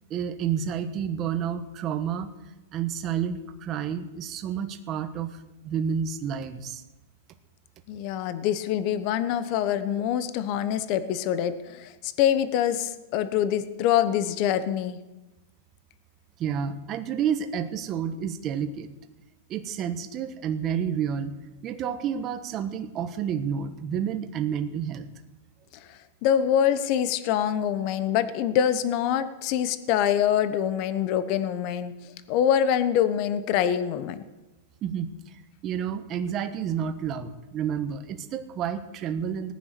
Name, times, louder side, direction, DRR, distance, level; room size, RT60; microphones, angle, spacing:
voice 1, 0.1-2.3 2.7-5.4 5.6-6.8 16.4-18.9 19.5-21.3 21.6-25.1 34.8-39.5, right 8 dB, 30° right, 8 dB, 1.2 m, -30 dB
voice 2, 7.9-15.0 25.9-31.9 32.3-34.2, left 9 dB, 40° left, 12 dB, 1.0 m, -25 dB
18.0 x 9.8 x 6.8 m, 1.0 s
supercardioid pair, 155°, 0 cm